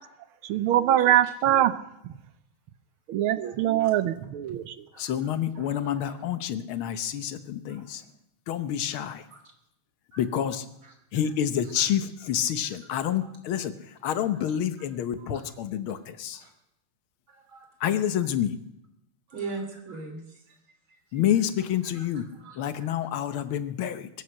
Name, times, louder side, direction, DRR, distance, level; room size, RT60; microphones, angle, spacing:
voice 1, 0.4-1.7 3.1-4.7, right 12 dB, 90° right, 13 dB, 1.7 m, -23 dB
voice 2, 5.0-8.0 8.5-9.2 10.2-10.6 11.1-16.4 17.8-18.6 21.1-22.2 22.6-24.1, left 10 dB, 80° left, 11 dB, 1.8 m, -28 dB
voice 3, 5.6-6.1 7.7-8.1 9.3-9.4 10.1-10.2 11.8-11.9 13.2-13.3 15.2-15.4 16.3-16.5 17.3-17.7 19.3-20.6 22.0-22.1 22.4-23.1, right 4 dB, 70° right, 3 dB, 3.7 m, -41 dB
22.5 x 7.9 x 6.4 m, 0.83 s
omnidirectional pair, 2.3 m